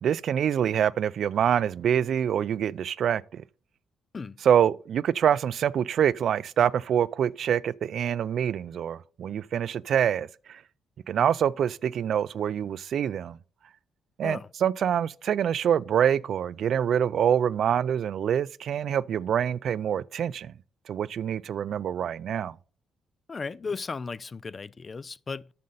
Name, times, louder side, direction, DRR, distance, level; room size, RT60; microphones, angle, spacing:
voice 1, 0.0-3.4 4.4-10.6 11.1-13.4 14.2-20.5 20.9-22.5, right 9 dB, 65° right, 0.3 m, -25 dB
voice 2, 23.3-25.5, left 4 dB, 35° left, 0.3 m, -35 dB
9.4 x 6.4 x 4.0 m
cardioid pair, 90°, 0 cm